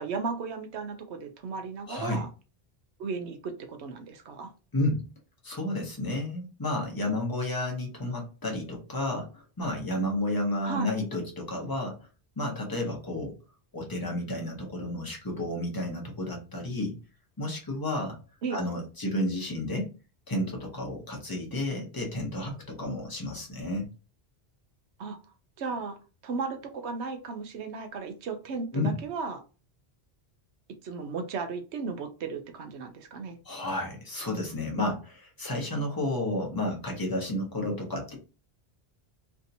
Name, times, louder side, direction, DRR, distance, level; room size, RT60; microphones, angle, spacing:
voice 1, 0.0-2.3 3.0-4.5 10.6-10.9 18.4-18.6 25.0-25.2 25.6-26.0 26.2-29.4 30.8-33.4, right 4 dB, 85° right, 7 dB, 1.0 m, -35 dB
voice 2, 1.9-2.3 4.7-5.0 5.4-12.0 12.4-13.3 13.7-17.0 17.4-18.2 18.5-19.9 20.3-23.9 28.7-29.0 33.4-38.2, left 1 dB, 20° left, 0 dB, 1.0 m, -31 dB
3.4 x 2.7 x 2.7 m, 0.33 s
omnidirectional pair, 1.1 m